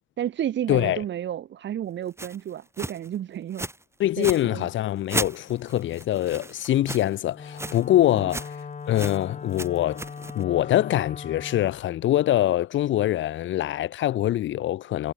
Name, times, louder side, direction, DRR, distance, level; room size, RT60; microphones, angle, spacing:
voice 1, 0.2-3.7 4.2-4.7 8.1-8.2, right 10 dB, 65° right, 2.5 m, -31 dB
voice 2, 0.7-1.0 4.0-8.5 8.9-10.0 10.3-15.1, left 13 dB, 75° left, 1.0 m, -24 dB
sound 1, 2.2-2.4 2.8-3.1 3.5-3.8 4.1-4.4 5.1-7.2 7.5-7.8 8.1-8.6 8.9-9.2 9.5-10.4, right 2 dB, 15° right, 7.3 m, -34 dB
Wind instrument woodwind instrument, 7.3-11.8, left 5 dB, 40° left, 3.7 m, -39 dB
cardioid pair, 90°, 20 cm